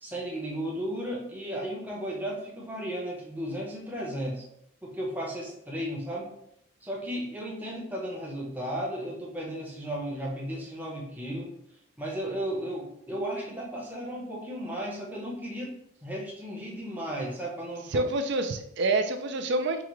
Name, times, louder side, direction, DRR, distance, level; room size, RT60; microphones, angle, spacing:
voice 1, 0.0-4.4 4.8-6.3 6.8-11.5 12.0-18.0, equal, 10° right, -3 dB, 0.7 m, -34 dB
voice 2, 17.9-19.8, right 2 dB, 55° right, 7 dB, 0.4 m, -27 dB
4.8 x 2.3 x 3.0 m, 0.75 s
head